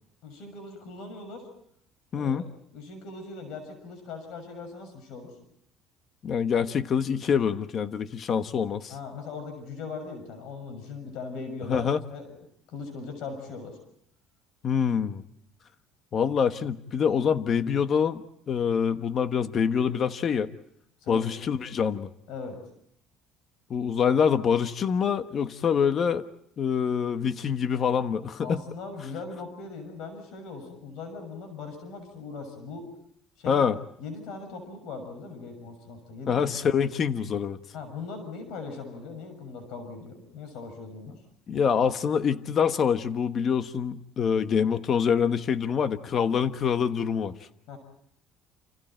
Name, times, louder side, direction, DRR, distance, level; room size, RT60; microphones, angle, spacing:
voice 1, 0.2-1.5 2.1-2.5 2.7-5.3 8.9-11.8 12.1-12.4 12.7-13.8 21.0-21.3 22.3-22.6 28.4-32.9 33.4-33.7 34.0-36.5 37.7-41.2 47.7-47.8, left 4 dB, 70° left, 8 dB, 6.6 m, -39 dB
voice 2, 2.1-2.4 6.2-8.9 11.7-12.0 14.6-15.2 16.1-20.5 21.1-22.1 23.7-26.2 26.6-28.6 33.5-33.8 36.3-37.6 41.5-47.3, left 7 dB, 35° left, 10 dB, 1.2 m, -25 dB
30.0 x 28.5 x 4.5 m, 0.71 s
cardioid pair, 145°, 0 cm